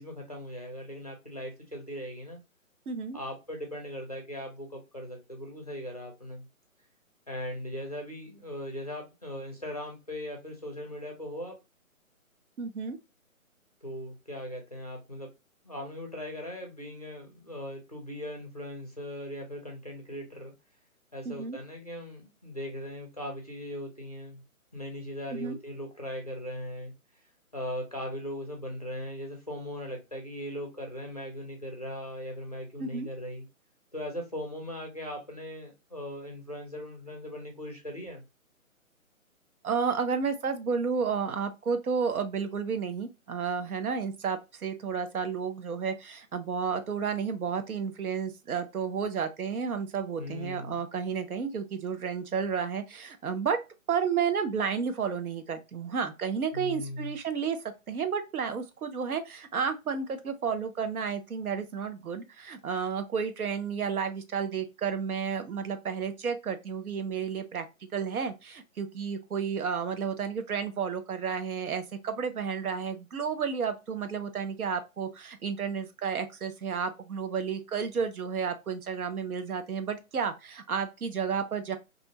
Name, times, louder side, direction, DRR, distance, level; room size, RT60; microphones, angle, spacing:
voice 1, 0.0-2.4 3.1-6.5 7.3-11.6 13.8-15.3 15.6-20.5 21.1-24.4 24.7-26.9 27.5-33.5 33.9-38.2 50.2-50.8 56.5-57.1, equal, 30° left, 0.4 m, -39 dB
voice 2, 2.9-3.2 12.6-13.0 21.3-21.6 25.3-25.6 32.8-33.1 39.6-53.6 53.9-57.6 57.9-67.7 67.9-81.8, right 6 dB, 85° right, 0.7 m, -31 dB
2.5 x 2.1 x 2.7 m
hypercardioid pair, 160°, 42 cm